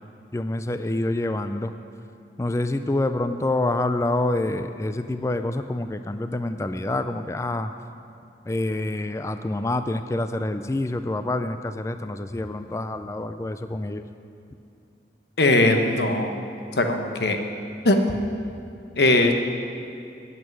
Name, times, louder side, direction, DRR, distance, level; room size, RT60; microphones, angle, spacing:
voice 1, 0.3-1.7 2.4-7.7 8.4-14.0, left 2 dB, 15° left, 9 dB, 0.3 m, -27 dB
voice 2, 15.4-16.3 16.8-17.4 17.8-18.0 19.0-19.3, left 2 dB, 70° left, 5 dB, 1.1 m, -19 dB
9.2 x 8.3 x 9.3 m, 2.5 s
head